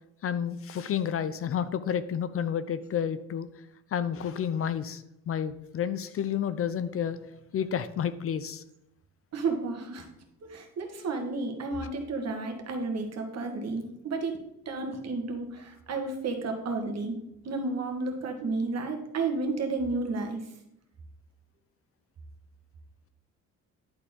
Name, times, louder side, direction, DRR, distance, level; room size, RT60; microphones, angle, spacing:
voice 1, 0.2-3.5 3.9-7.2 7.5-8.6, left 8 dB, 50° left, 14 dB, 0.5 m, -30 dB
voice 2, 9.3-10.1 10.4-14.4 14.6-17.2 17.4-20.4, right 3 dB, 55° right, 4 dB, 1.6 m, -32 dB
10.5 x 4.2 x 3.7 m, 0.83 s
cardioid pair, 90°, 30 cm